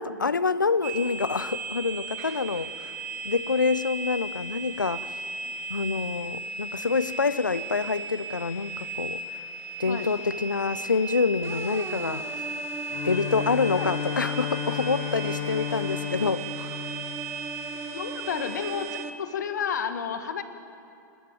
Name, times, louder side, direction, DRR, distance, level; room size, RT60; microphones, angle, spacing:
voice 1, 0.0-2.9 3.2-5.1 5.7-9.2 9.8-12.3 13.0-16.9, left 4 dB, 85° left, 17 dB, 0.7 m, -27 dB
sound 1, 0.8-19.0, right 3 dB, 55° right, 1.3 m, -36 dB
sound 2, 11.4-19.1, right 4 dB, 25° right, 1.5 m, -39 dB
Bowed string instrument, 12.9-18.0, left 12 dB, 50° left, 1.1 m, -34 dB
voice 2, 13.4-13.9 17.9-18.9 19.2-20.4, left 7 dB, 70° left, 9 dB, 1.7 m, -31 dB
27.5 x 13.5 x 9.2 m, 2.6 s
figure-of-eight pair, 100°, 10 cm